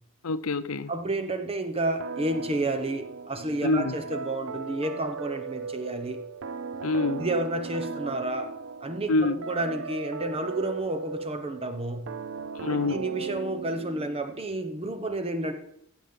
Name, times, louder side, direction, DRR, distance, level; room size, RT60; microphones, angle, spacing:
voice 1, 0.2-0.9 3.6-4.0 6.8-7.3 9.1-9.4 12.5-13.0, left 3 dB, 80° left, 0.7 m, -26 dB
voice 2, 0.9-6.2 7.2-8.5 8.8-12.1 12.7-15.5, right 2 dB, 30° right, 1.0 m, -30 dB
sound 1, 2.0-14.4, right 5 dB, 60° right, 0.5 m, -37 dB
15.5 x 7.4 x 5.4 m
head